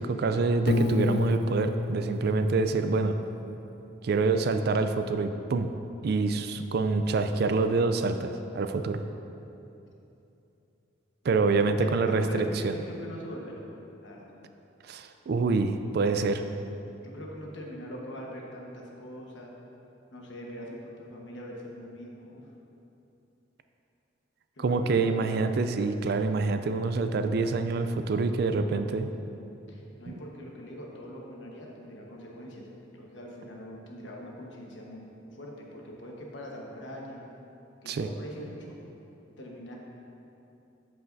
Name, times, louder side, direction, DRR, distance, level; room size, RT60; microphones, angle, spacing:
voice 1, 0.0-3.1 4.0-9.0 11.2-12.7 14.9-16.4 24.6-29.1 37.9-38.1, right 3 dB, 55° right, 8 dB, 0.4 m, -26 dB
Piano, 0.7-3.6, left 2 dB, 55° left, 0.4 m, -29 dB
voice 2, 11.8-13.6 14.0-14.3 17.0-19.5 20.1-22.5 24.6-25.5 29.7-32.7 32.9-37.2 37.8-38.8 39.4-39.7, equal, 70° left, -2 dB, 1.2 m, -42 dB
13.0 x 5.6 x 2.6 m, 2.9 s
head